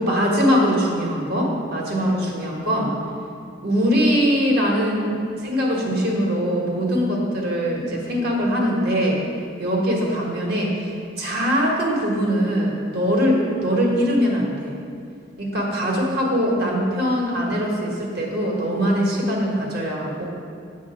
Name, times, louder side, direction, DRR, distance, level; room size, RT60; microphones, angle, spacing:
voice 1, 0.0-2.9 3.6-9.2 9.6-10.9 11.2-14.7 15.4-20.2, equal, 55° right, -2 dB, 1.1 m, -22 dB
7.2 x 2.7 x 5.8 m, 2.4 s
head